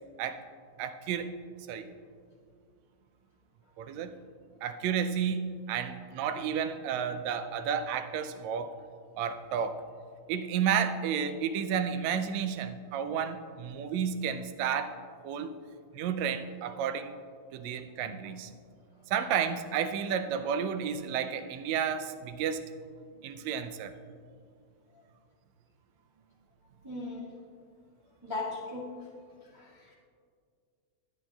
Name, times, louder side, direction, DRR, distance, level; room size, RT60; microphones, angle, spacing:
voice 1, 0.8-1.3 1.7-1.9 3.8-4.1 4.6-8.8 9.2-9.8 10.3-15.0 15.2-15.5 15.9-17.1 17.5-18.5 19.1-22.6 23.2-23.9, right 7 dB, 75° right, 8 dB, 1.7 m, -31 dB
voice 2, 26.8-27.4 28.2-29.1 29.4-29.9, left 2 dB, 25° right, -6 dB, 0.6 m, -39 dB
19.0 x 11.0 x 2.4 m, 2.2 s
omnidirectional pair, 3.6 m